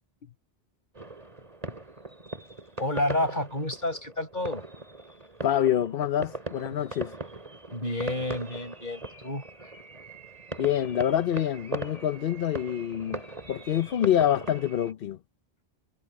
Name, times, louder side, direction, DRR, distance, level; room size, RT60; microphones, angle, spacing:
sound 1, 0.9-14.9, right 2 dB, 35° right, 3.4 m, -40 dB
voice 1, 2.8-4.6 7.7-9.4, left 1 dB, 45° left, 7.3 m, -30 dB
voice 2, 5.4-7.1 10.6-13.2 13.5-15.2, left 10 dB, 65° left, 0.9 m, -26 dB
omnidirectional pair, 1.1 m